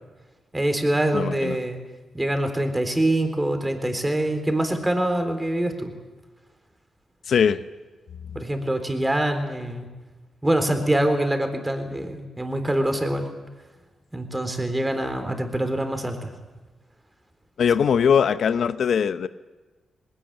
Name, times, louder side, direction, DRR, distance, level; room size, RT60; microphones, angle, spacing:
voice 1, 0.5-1.8 2.1-5.9 8.3-9.9 10.4-13.3 14.1-16.3, right 1 dB, 15° right, 6 dB, 3.8 m, -24 dB
voice 2, 1.1-1.6 7.3-7.6 8.2-8.3 17.6-19.3, left 7 dB, 70° left, 14 dB, 0.8 m, -21 dB
19.5 x 18.0 x 8.9 m, 1.2 s
supercardioid pair, 55°, 0 cm